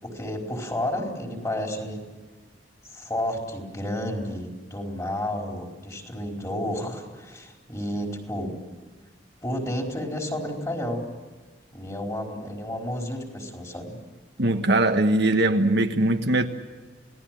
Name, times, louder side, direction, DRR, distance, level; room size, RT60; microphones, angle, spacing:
voice 1, 0.0-2.0 2.9-8.5 9.4-11.1 11.7-14.0, left 1 dB, 20° left, 1 dB, 4.5 m, -31 dB
voice 2, 14.4-16.5, right 2 dB, 65° right, 5 dB, 1.5 m, -21 dB
28.5 x 18.5 x 7.6 m, 1.3 s
head